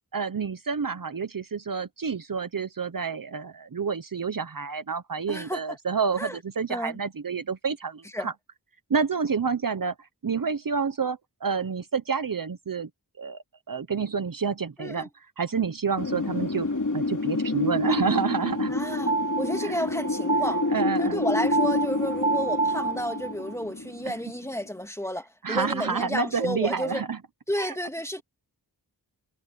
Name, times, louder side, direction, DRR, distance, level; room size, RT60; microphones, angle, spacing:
voice 1, 0.1-8.3 8.9-9.9 10.2-12.9 13.2-15.1 15.4-16.7 16.9-18.7 19.6-19.8 20.7-21.2 25.4-27.2 27.6-27.8, right 5 dB, 55° right, 0.9 m, -28 dB
voice 2, 5.3-5.6 6.2-6.4 6.7-7.0 8.1-8.3 14.8-15.1 18.7-20.6 21.0-27.0 27.5-28.2, equal, 5° left, 2.7 m, -31 dB
Wind, 16.0-24.7, left 2 dB, 50° left, 3.3 m, -28 dB
sound 1, 18.3-23.5, right 4 dB, 20° right, 0.6 m, -29 dB
wide cardioid pair, 65°, 40 cm